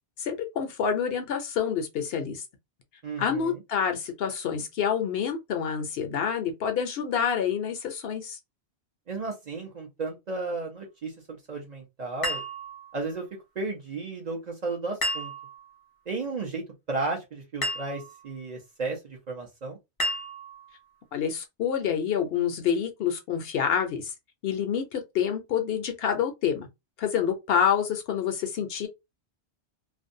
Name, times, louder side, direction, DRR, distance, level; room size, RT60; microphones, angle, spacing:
voice 1, 0.2-2.4 3.2-8.4 21.1-24.1 24.4-26.7 27.0-28.9, left 8 dB, 65° left, 0.7 m, -27 dB
voice 2, 3.0-3.6 9.1-12.4 12.9-13.3 13.6-15.3 16.1-19.8, right 3 dB, 45° right, 0.6 m, -34 dB
sound 1, 12.2-13.2 15.0-15.8 17.6-18.3 20.0-20.8, equal, 40° left, 0.3 m, -32 dB
2.5 x 2.1 x 2.6 m
omnidirectional pair, 1.1 m